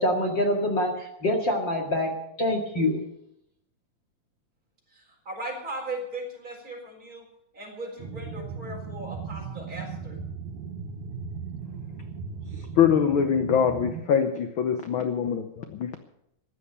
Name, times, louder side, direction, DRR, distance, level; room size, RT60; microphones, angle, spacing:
voice 1, 0.0-2.1 2.4-3.0, left 1 dB, 40° left, 0 dB, 2.5 m, -25 dB
voice 2, 4.9-7.3 7.5-10.2, right 1 dB, 30° right, 0 dB, 4.6 m, -38 dB
sound 1, 8.0-14.0, right 6 dB, 80° right, 2.6 m, -37 dB
voice 3, 12.8-16.0, left 8 dB, 65° left, 7 dB, 1.3 m, -23 dB
15.5 x 11.0 x 6.8 m, 0.79 s
omnidirectional pair, 3.4 m